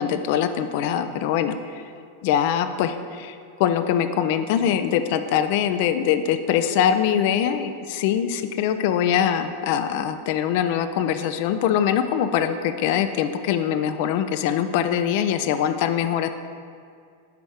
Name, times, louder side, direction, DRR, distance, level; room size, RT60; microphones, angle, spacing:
voice 1, 0.0-1.6 2.2-16.3, left 9 dB, 50° left, 9 dB, 0.3 m, -23 dB
5.0 x 5.0 x 4.7 m, 2.3 s
figure-of-eight pair, 90°, 0 cm